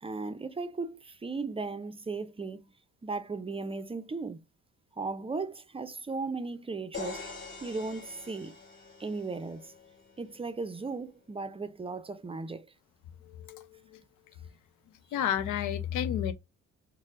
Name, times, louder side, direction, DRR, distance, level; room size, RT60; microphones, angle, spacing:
voice 1, 0.0-2.7 3.0-4.4 4.9-7.3 7.6-8.5 9.0-9.7 10.2-12.7, right 3 dB, 20° right, 0.4 m, -36 dB
sound 1, 6.9-10.8, left 4 dB, 40° left, 1.9 m, -45 dB
voice 2, 13.3-13.7 13.9-14.0 15.1-16.3, left 9 dB, 85° left, 0.7 m, -31 dB
4.3 x 2.1 x 3.6 m
cardioid pair, 90°, 30 cm